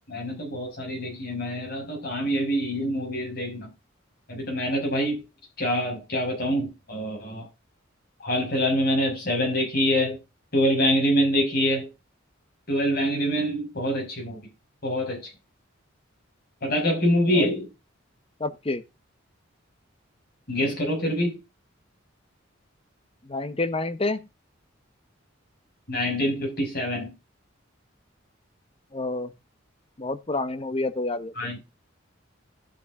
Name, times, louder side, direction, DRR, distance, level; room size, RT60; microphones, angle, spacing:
voice 1, 0.1-3.7 4.3-5.2 5.6-7.5 8.2-10.2 10.5-11.9 12.7-14.4 14.8-15.3 16.6-17.7 20.5-21.4 25.9-27.2 31.3-31.6, equal, 50° left, 6.0 m, -25 dB
voice 2, 18.4-18.8 23.3-24.2 28.9-29.3 30.0-31.3, left 2 dB, 30° left, 0.9 m, -28 dB
13.0 x 7.0 x 3.6 m
head